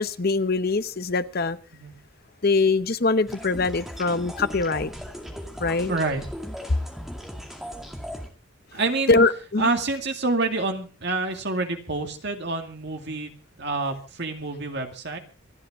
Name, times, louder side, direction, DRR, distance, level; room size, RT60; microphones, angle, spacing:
voice 1, 0.0-1.6 2.4-4.9 5.6-5.9 9.1-9.7, left 3 dB, 45° left, 0.8 m, -23 dB
sound 1, 3.3-8.3, equal, ahead, 2.3 m, -37 dB
voice 2, 5.9-6.2 8.7-9.2 9.6-13.3 13.6-15.2, right 3 dB, 50° right, 2.2 m, -27 dB
27.5 x 9.5 x 3.6 m
head